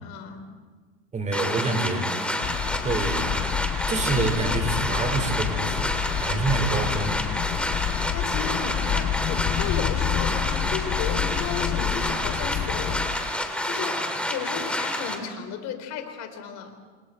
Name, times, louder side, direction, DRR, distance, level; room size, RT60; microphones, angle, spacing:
voice 1, 0.0-0.5 8.1-13.2 13.6-14.0 14.3-16.8, left 7 dB, 55° left, 6 dB, 4.2 m, -34 dB
voice 2, 1.1-2.1 2.8-7.2, right 3 dB, 20° right, 4 dB, 4.9 m, -27 dB
sound 1, 1.3-15.2, left 1 dB, 5° left, 3.1 m, -29 dB
sound 2, 2.4-13.3, left 11 dB, 35° left, 0.9 m, -29 dB
28.5 x 27.5 x 4.5 m, 1.5 s
hypercardioid pair, 105°, 33 cm